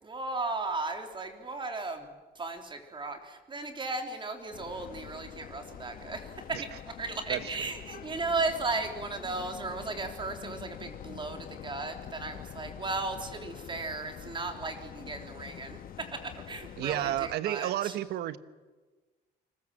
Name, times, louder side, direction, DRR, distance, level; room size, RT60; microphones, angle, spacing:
voice 1, 0.0-6.7 7.0-18.0, right 3 dB, 30° right, 6 dB, 3.4 m, -36 dB
sound 1, 4.5-17.4, left 10 dB, 60° left, 1.3 m, -46 dB
voice 2, 16.8-18.4, right 13 dB, 75° right, 15 dB, 1.2 m, -31 dB
29.0 x 20.5 x 7.8 m, 1.3 s
cardioid pair, 110°, 17 cm